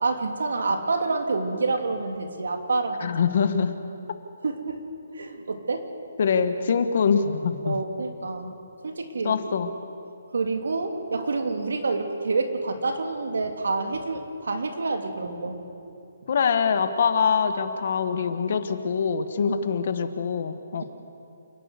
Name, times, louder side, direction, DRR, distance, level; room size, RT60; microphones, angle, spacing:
voice 1, 0.0-3.1 4.4-4.8 5.1-5.8 7.6-8.5 8.8-9.7 10.3-15.6 19.5-19.6, right 3 dB, 80° right, 5 dB, 2.8 m, -28 dB
voice 2, 3.0-3.7 4.1-4.2 6.2-7.8 9.2-9.7 16.3-20.8, left 6 dB, 45° left, 10 dB, 1.3 m, -24 dB
28.5 x 11.0 x 8.2 m, 2.7 s
hypercardioid pair, 170°, 0 cm